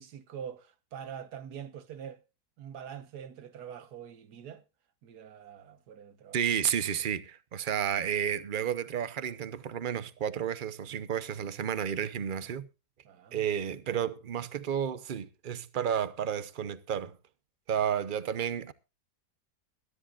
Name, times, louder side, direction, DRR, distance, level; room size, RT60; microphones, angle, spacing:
voice 1, 0.0-2.2 2.6-4.6 5.0-6.4 13.0-13.8 17.9-18.0, right 8 dB, 75° right, 1.6 m, -45 dB
voice 2, 6.3-12.7 13.3-17.2 17.7-18.7, right 9 dB, 45° right, 0.7 m, -31 dB
21.0 x 13.0 x 2.4 m
omnidirectional pair, 1.7 m